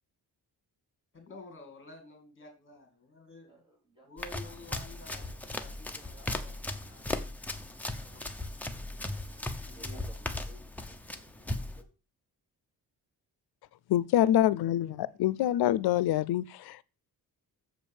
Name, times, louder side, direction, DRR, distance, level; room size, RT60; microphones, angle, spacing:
voice 1, 1.1-3.6 4.0-5.4 6.5-6.6, left 2 dB, 30° left, 2.6 m, -49 dB
voice 2, 3.5-4.1 5.6-8.8 9.6-11.9, equal, 15° right, 3.6 m, -58 dB
Run, 4.2-11.8, left 2 dB, 5° left, 0.7 m, -37 dB
voice 3, 13.9-16.8, left 12 dB, 80° left, 0.6 m, -26 dB
7.3 x 5.2 x 7.2 m
wide cardioid pair, 160°, 38 cm